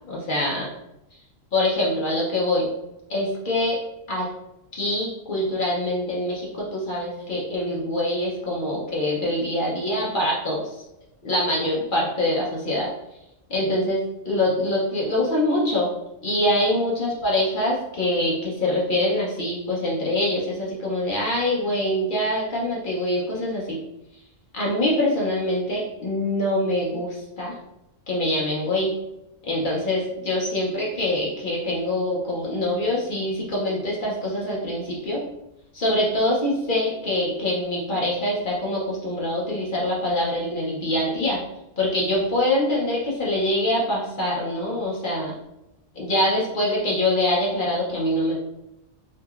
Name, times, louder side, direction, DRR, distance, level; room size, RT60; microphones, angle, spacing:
voice 1, 0.1-0.7 1.5-2.7 3.1-3.8 4.1-4.3 4.7-10.6 11.2-12.9 13.5-15.9 16.2-23.8 24.5-27.5 28.1-28.9 29.4-35.2 35.7-41.4 41.8-45.3 45.9-48.4, left 1 dB, 50° left, -4 dB, 0.7 m, -24 dB
2.9 x 2.7 x 2.3 m, 0.89 s
omnidirectional pair, 1.4 m